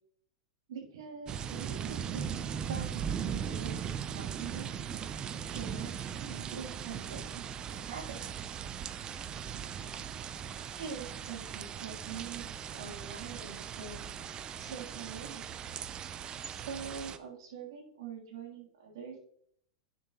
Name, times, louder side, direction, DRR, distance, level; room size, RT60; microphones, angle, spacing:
voice 1, 0.7-4.8 5.5-5.9 6.2-8.4 10.7-14.0 14.6-15.5 16.5-19.2, right 6 dB, 70° right, -2 dB, 3.2 m, -44 dB
sound 1, 1.3-17.2, right 8 dB, 30° right, 0.6 m, -39 dB
10.0 x 6.8 x 3.0 m, 0.66 s
hypercardioid pair, 105°, 3 cm